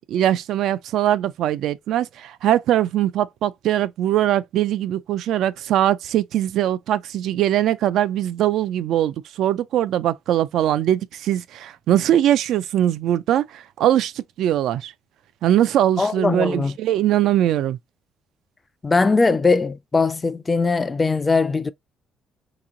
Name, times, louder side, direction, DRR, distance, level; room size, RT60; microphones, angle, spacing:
voice 1, 0.1-14.9 15.4-17.8, right 12 dB, 75° right, 0.3 m, -21 dB
voice 2, 16.0-16.7 18.8-21.7, left 4 dB, 20° left, 0.3 m, -20 dB
3.0 x 2.7 x 3.7 m
cardioid pair, 125°, 0 cm